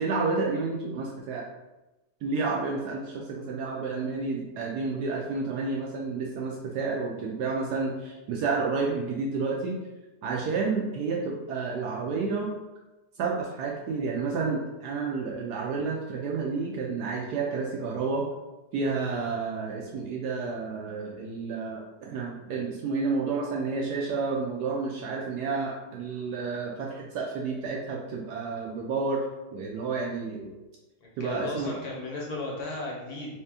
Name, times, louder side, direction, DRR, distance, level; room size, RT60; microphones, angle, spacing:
voice 1, 0.0-1.4 2.2-9.8 10.2-12.5 13.2-18.3 18.7-29.2 29.5-30.5 31.2-31.7, right 4 dB, 75° right, -2 dB, 1.1 m, -30 dB
voice 2, 31.0-33.4, left 2 dB, 65° left, -3 dB, 1.3 m, -35 dB
3.2 x 2.9 x 3.4 m, 1.0 s
omnidirectional pair, 1.8 m